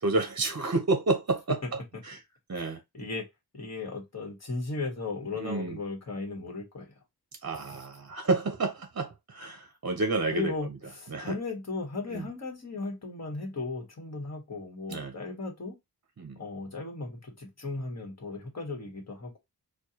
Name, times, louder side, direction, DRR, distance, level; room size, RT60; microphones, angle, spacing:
voice 1, 0.0-1.6 2.0-2.2 2.5-2.8 5.4-5.8 7.4-10.5 11.1-11.3 12.1-12.2 14.9-15.2 16.2-16.4, right 3 dB, 45° right, 0.7 m, -29 dB
voice 2, 2.5-3.2 3.5-6.9 7.6-7.8 10.3-15.8 16.3-19.4, left 3 dB, 40° left, 1.5 m, -36 dB
4.4 x 2.3 x 2.8 m
wide cardioid pair, 70°, 39 cm